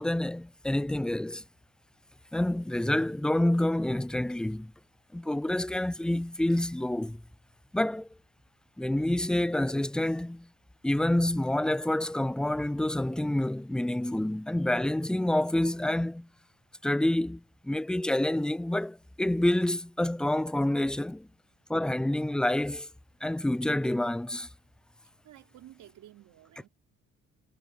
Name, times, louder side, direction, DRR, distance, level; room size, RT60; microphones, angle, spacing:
voice 1, 0.0-1.4 2.3-4.7 5.1-7.2 7.7-8.1 8.8-10.5 10.8-16.3 16.8-21.3 21.7-22.9 23.2-24.5, left 1 dB, 5° left, 0.3 m, -28 dB
voice 2, 25.2-26.7, right 13 dB, 85° right, 5.4 m, -52 dB
cardioid pair, 90°, 30 cm